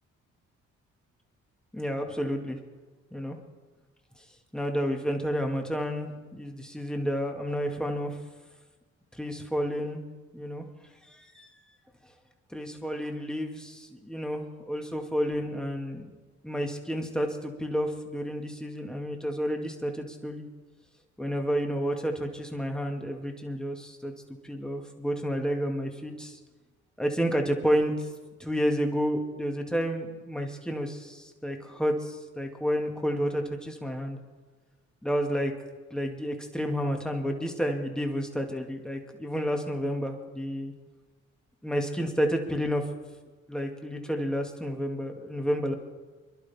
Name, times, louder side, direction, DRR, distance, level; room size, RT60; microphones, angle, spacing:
voice 1, 1.7-2.6 3.1-3.4 4.5-8.2 9.1-10.0 10.3-10.6 11.1-11.6 12.5-16.1 16.4-20.4 21.2-24.1 24.4-26.4 27.0-28.1 28.4-34.2 35.0-35.5 35.9-40.7 41.6-42.8 43.5-45.8, equal, ahead, 2 dB, 2.1 m, -30 dB
27.0 x 11.5 x 3.6 m, 1.3 s
cardioid pair, 90°, 30 cm